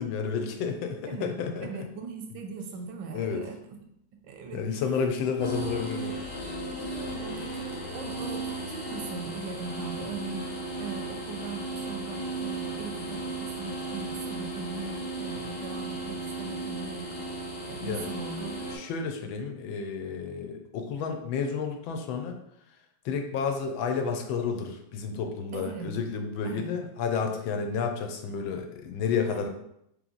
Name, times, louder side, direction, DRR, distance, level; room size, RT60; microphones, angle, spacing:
voice 1, 0.0-1.7 3.1-3.4 4.5-6.2 17.8-18.1 18.7-22.4 23.0-29.5, left 5 dB, 90° left, 5 dB, 1.4 m, -31 dB
voice 2, 0.9-1.3 1.6-3.8 4.1-4.8 5.2-5.5 6.8-17.1 17.7-18.6 25.5-25.9 26.4-26.7 29.3-29.5, right 4 dB, 85° right, 5 dB, 1.4 m, -40 dB
sound 1, 5.4-18.8, right 2 dB, 65° left, 0.6 m, -35 dB
3.7 x 3.1 x 3.8 m, 0.77 s
omnidirectional pair, 2.1 m